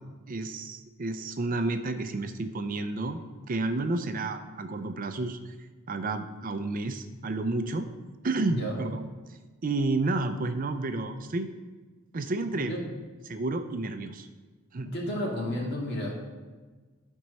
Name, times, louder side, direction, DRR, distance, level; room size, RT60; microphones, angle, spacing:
voice 1, 0.3-3.2 3.5-5.5 5.9-7.9 8.2-9.0 9.6-11.5 12.1-12.7 13.3-14.3 14.7-14.9, right 2 dB, 40° right, 8 dB, 0.5 m, -30 dB
voice 2, 8.5-8.8 12.6-12.8 14.8-16.1, left 1 dB, 55° left, -2 dB, 2.3 m, -32 dB
11.5 x 4.5 x 5.4 m, 1.3 s
head